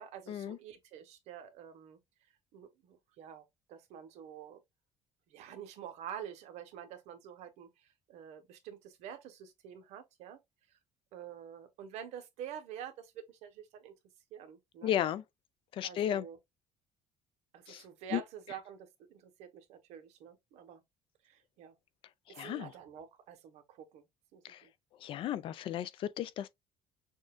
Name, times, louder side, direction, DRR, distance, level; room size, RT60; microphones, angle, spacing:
voice 1, 0.0-2.0 2.5-4.6 5.3-10.4 11.1-13.9 14.3-15.0 15.8-16.4 17.5-20.8 21.2-21.8 22.3-24.1 24.3-24.7 25.7-25.9, right 9 dB, 65° right, 1.0 m, -48 dB
voice 2, 14.8-15.2 15.7-16.3 17.7-17.8 18.1-18.2 22.4-22.7 24.5-24.6 25.0-26.5, left 11 dB, 45° left, 0.4 m, -34 dB
6.3 x 2.3 x 2.2 m
cardioid pair, 160°, 12 cm